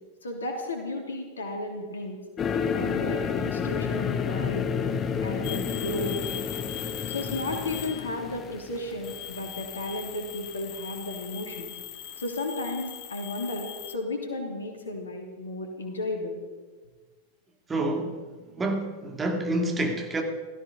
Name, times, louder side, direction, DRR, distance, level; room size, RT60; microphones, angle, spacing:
voice 1, 0.2-2.2 2.7-4.7 5.2-6.2 7.1-11.7 12.2-16.4, left 2 dB, 70° left, 3 dB, 3.0 m, -34 dB
sound 1, 2.4-9.7, left 6 dB, 25° left, 1.0 m, -30 dB
sound 2, 5.4-8.3 8.8-14.0, left 11 dB, 50° left, 1.2 m, -40 dB
voice 2, 17.7-20.2, right 1 dB, 15° right, 3 dB, 2.3 m, -28 dB
16.5 x 14.0 x 5.3 m, 1.4 s
figure-of-eight pair, 90°, 0 cm